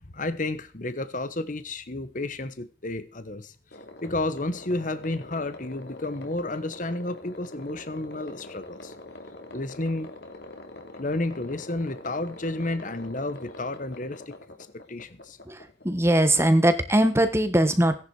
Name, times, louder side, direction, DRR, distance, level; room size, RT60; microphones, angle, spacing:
voice 1, 0.1-3.5 4.0-8.9 9.5-10.1 11.0-14.4 14.9-15.4, left 2 dB, 40° left, 12 dB, 1.1 m, -31 dB
sound 1, 3.7-16.3, left 2 dB, 60° left, 3.0 m, -44 dB
voice 2, 15.8-18.0, right 1 dB, 15° right, 9 dB, 1.3 m, -20 dB
17.5 x 11.0 x 4.9 m, 0.38 s
head